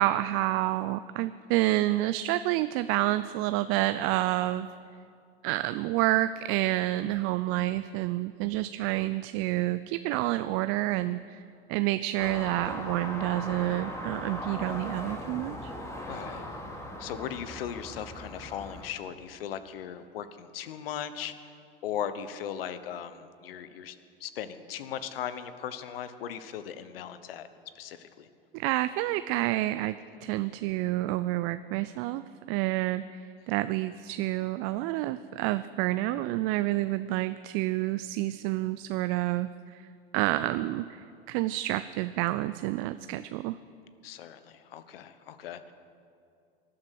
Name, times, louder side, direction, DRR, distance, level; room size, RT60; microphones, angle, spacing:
voice 1, 0.0-4.7 5.4-11.4 11.7-15.7 28.5-32.2 32.5-33.2 33.5-39.8 40.1-43.6, right 16 dB, 45° right, 13 dB, 0.5 m, -29 dB
sound 1, 12.2-18.8, equal, 10° left, 2.7 m, -39 dB
voice 2, 16.1-16.5 17.0-21.6 21.8-27.5 27.7-28.3 44.0-45.7, left 9 dB, 70° left, 12 dB, 1.1 m, -38 dB
19.0 x 11.5 x 6.4 m, 2.4 s
hypercardioid pair, 85°, 30 cm